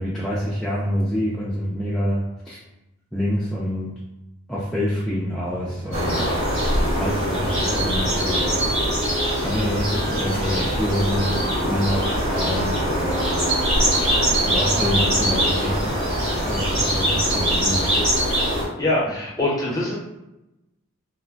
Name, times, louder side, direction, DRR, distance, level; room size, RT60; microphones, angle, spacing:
voice 1, 0.0-2.6 3.1-3.9 4.5-6.4 6.9-8.7 9.4-13.3 14.4-18.5, equal, ahead, -8 dB, 0.3 m, -27 dB
sound 1, 5.4-14.6, equal, 25° right, 0.9 m, -39 dB
sound 2, 5.9-18.6, equal, 65° right, 1.3 m, -22 dB
Wind instrument woodwind instrument, 6.8-14.1, equal, 75° left, 0.4 m, -37 dB
voice 2, 18.8-19.9, left 1 dB, 15° left, -5 dB, 0.7 m, -23 dB
3.0 x 2.1 x 2.4 m, 0.94 s
head